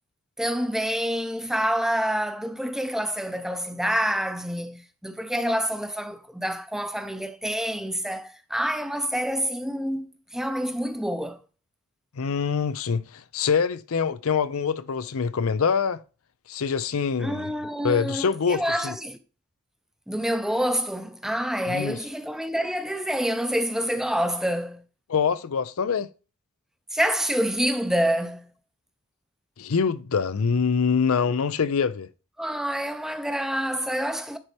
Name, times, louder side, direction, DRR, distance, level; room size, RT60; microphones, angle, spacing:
voice 1, 0.4-11.4 17.2-19.2 20.1-24.8 26.9-28.5 32.4-34.4, equal, ahead, 0.6 m, -27 dB
voice 2, 12.2-16.0 16.5-17.4 17.8-18.9 21.7-22.0 25.1-26.1 29.6-32.1, left 6 dB, 85° left, 0.5 m, -25 dB
10.5 x 4.3 x 3.4 m
head